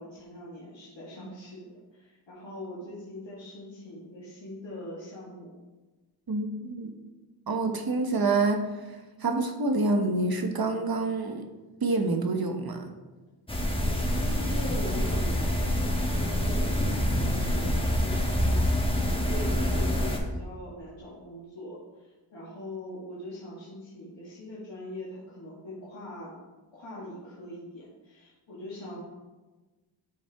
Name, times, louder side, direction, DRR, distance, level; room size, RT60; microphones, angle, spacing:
voice 1, 0.0-5.5 13.8-26.4 26.7-29.0, left 1 dB, 80° left, -7 dB, 1.9 m, -42 dB
voice 2, 6.3-6.9 7.5-11.4 11.8-12.8, right 3 dB, 55° right, 4 dB, 1.1 m, -27 dB
sound 1, 13.5-20.2, equal, 10° left, 1.4 m, -26 dB
12.0 x 4.5 x 3.5 m, 1.2 s
wide cardioid pair, 65°, 44 cm